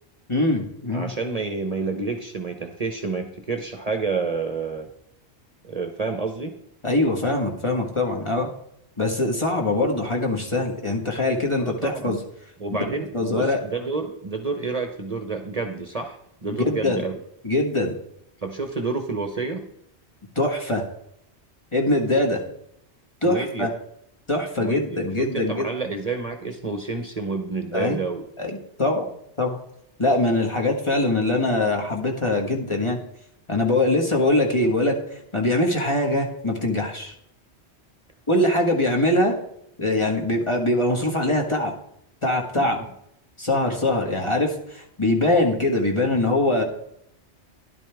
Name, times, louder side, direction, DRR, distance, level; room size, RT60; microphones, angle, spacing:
voice 1, 0.3-1.1 6.8-8.5 9.0-12.2 12.9-13.6 16.6-17.0 17.4-17.9 20.3-20.8 21.7-22.4 23.2-23.7 24.3-25.7 27.7-28.0 28.4-28.5 28.8-29.0 29.4-29.6 30.0-33.0 33.5-35.0 35.3-37.1 38.3-39.3 39.8-41.7 42.2-42.8 43.4-46.6, left 1 dB, 25° left, 1 dB, 1.5 m, -22 dB
voice 2, 0.9-4.9 5.6-6.6 11.6-12.2 12.6-17.2 18.4-19.7 23.2-23.7 24.6-28.2 42.6-42.7, right 4 dB, 35° right, 5 dB, 0.9 m, -29 dB
12.5 x 11.0 x 3.5 m, 0.75 s
omnidirectional pair, 1.1 m